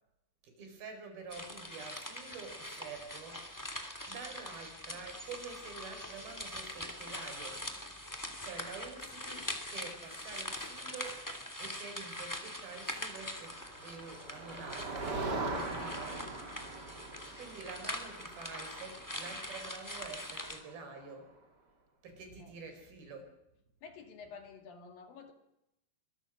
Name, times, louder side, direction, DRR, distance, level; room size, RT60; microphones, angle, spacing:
voice 1, 0.4-3.5 4.0-7.6 8.4-13.6 13.8-15.3 15.6-16.3 17.4-21.3 22.0-23.3, right 4 dB, 65° right, 6 dB, 6.3 m, -48 dB
sound 1, 1.3-20.6, left 1 dB, 5° left, 1.9 m, -43 dB
Motor vehicle (road), 13.2-21.0, right 3 dB, 30° right, 2.5 m, -42 dB
voice 2, 15.8-16.4 22.4-22.6 23.8-25.3, left 5 dB, 60° left, 6 dB, 3.7 m, -51 dB
25.5 x 22.5 x 6.4 m, 0.84 s
omnidirectional pair, 4.8 m